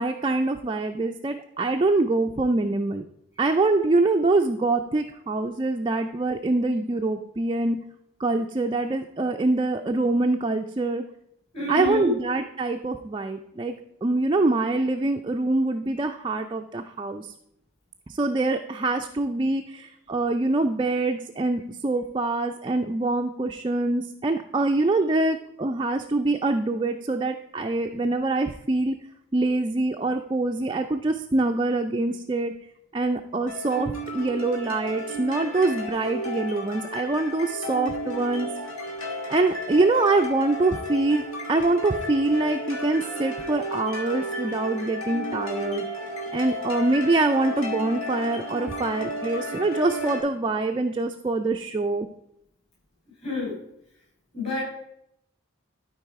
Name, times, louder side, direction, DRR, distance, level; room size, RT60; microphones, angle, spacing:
voice 1, 0.0-3.0 3.4-7.8 8.2-11.0 11.7-13.7 14.0-17.3 18.2-29.0 29.3-32.5 32.9-38.5 39.3-45.8 46.3-52.1, right 2 dB, 25° right, 4 dB, 0.3 m, -24 dB
voice 2, 11.5-12.1 53.2-53.6 54.3-54.6, left 3 dB, 30° left, -4 dB, 4.1 m, -28 dB
sound 1, 33.5-50.2, equal, 80° left, 2.1 m, -33 dB
12.0 x 4.7 x 4.7 m, 0.78 s
head